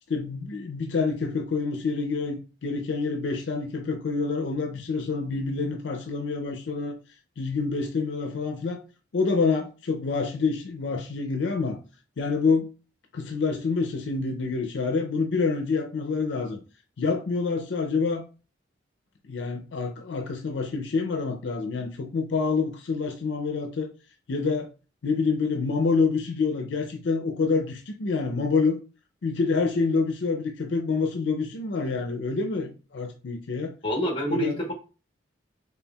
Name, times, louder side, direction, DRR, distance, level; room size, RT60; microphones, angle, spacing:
voice 1, 0.1-7.0 7.4-8.8 9.1-11.8 12.2-12.7 13.1-16.6 17.0-18.2 19.3-23.9 24.3-24.7 25.0-28.8 29.2-33.7 34.3-34.6, left 4 dB, 70° left, 0.5 m, -27 dB
voice 2, 33.8-34.7, equal, 30° left, 1.0 m, -26 dB
4.4 x 3.4 x 2.3 m
head